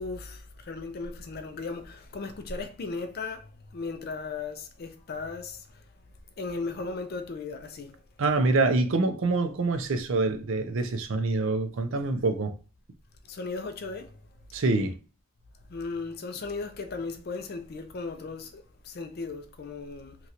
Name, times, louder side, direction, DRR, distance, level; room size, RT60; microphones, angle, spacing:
voice 1, 0.0-5.8 6.4-8.0 13.2-14.1 15.7-20.2, left 4 dB, 45° left, 0.4 m, -36 dB
voice 2, 8.2-12.6 14.5-15.0, right 3 dB, 60° right, 0.5 m, -26 dB
3.0 x 2.4 x 2.8 m
head